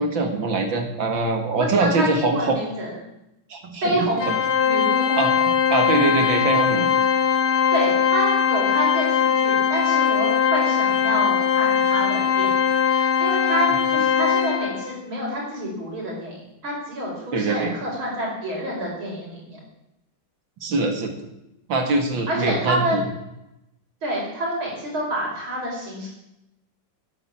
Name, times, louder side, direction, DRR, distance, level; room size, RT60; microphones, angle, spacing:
voice 1, 0.0-2.6 3.5-4.1 5.2-5.3 5.7-6.9 17.3-17.7 20.6-21.1 21.7-23.0, right 3 dB, 70° right, 5 dB, 2.8 m, -23 dB
voice 2, 1.5-2.9 3.8-5.2 7.7-19.6 22.3-23.1 24.0-26.1, right 1 dB, 90° right, -2 dB, 6.2 m, -28 dB
Organ, 4.2-14.9, left 7 dB, 85° left, 2.3 m, -20 dB
13.0 x 10.5 x 8.8 m, 0.88 s
omnidirectional pair, 2.2 m